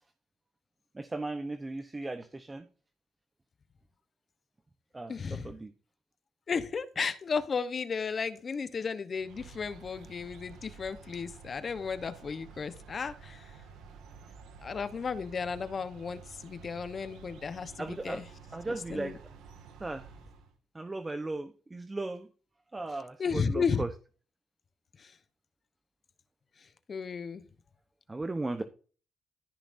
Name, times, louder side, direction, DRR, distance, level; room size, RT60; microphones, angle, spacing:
voice 1, 0.9-2.7 4.9-5.7 17.8-18.2 18.5-19.2 19.8-20.1 20.7-22.3 22.7-23.9 28.1-28.6, right 2 dB, 20° right, 9 dB, 0.9 m, -36 dB
voice 2, 5.1-5.5 6.5-13.5 14.6-18.2 18.7-19.2 23.2-23.8 25.0-25.1 26.9-27.4, left 5 dB, 45° left, 12 dB, 1.0 m, -34 dB
sound 1, 9.2-20.5, right 5 dB, 85° right, 2.0 m, -51 dB
14.5 x 5.8 x 2.7 m, 0.38 s
cardioid pair, 90°, 0 cm